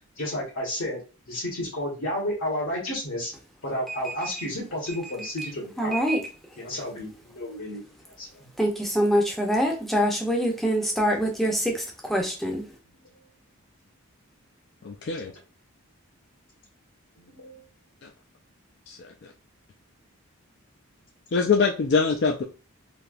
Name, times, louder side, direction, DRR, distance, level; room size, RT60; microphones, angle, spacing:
voice 1, 0.1-1.0 1.3-3.3 3.6-5.9 6.6-7.8 8.2-8.5 15.2-15.3 17.2-17.6, left 1 dB, 70° left, 1.3 m, -32 dB
voice 2, 5.8-6.2 8.6-12.7, equal, ahead, 0.6 m, -24 dB
voice 3, 14.8-15.3 18.0-18.1 18.9-19.0 21.3-22.4, left 5 dB, 50° left, 0.4 m, -23 dB
3.4 x 2.8 x 2.4 m
head